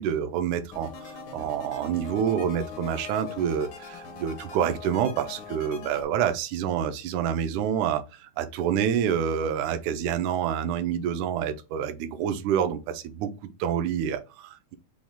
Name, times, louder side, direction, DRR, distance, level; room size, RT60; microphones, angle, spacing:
voice 1, 0.0-13.3 13.6-14.8, right 8 dB, 80° right, 2.0 m, -27 dB
sound 1, 0.7-6.0, left 6 dB, 75° left, 1.1 m, -41 dB
6.1 x 2.3 x 3.6 m
omnidirectional pair, 3.6 m